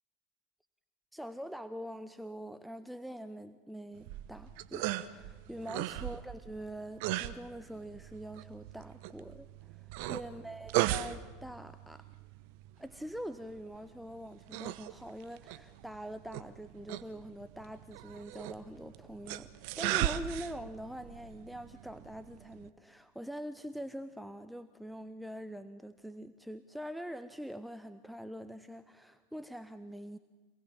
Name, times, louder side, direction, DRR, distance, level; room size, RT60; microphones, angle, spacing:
voice 1, 1.1-12.1 12.8-19.5 19.8-30.2, equal, ahead, 11 dB, 0.9 m, -44 dB
sound 1, 4.0-22.7, right 15 dB, 60° right, 1.0 m, -38 dB
26.5 x 19.0 x 7.4 m, 1.4 s
hypercardioid pair, 90°, 0 cm